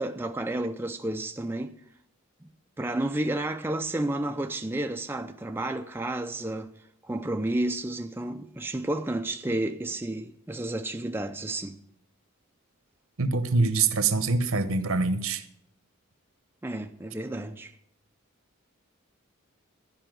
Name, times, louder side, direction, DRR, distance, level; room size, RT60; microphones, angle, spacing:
voice 1, 0.0-1.8 2.4-2.5 2.8-6.7 7.0-11.8 16.6-17.8, right 1 dB, 10° right, 0.4 m, -31 dB
voice 2, 13.2-15.4, right 3 dB, 70° right, 1.0 m, -24 dB
13.5 x 5.5 x 9.1 m
head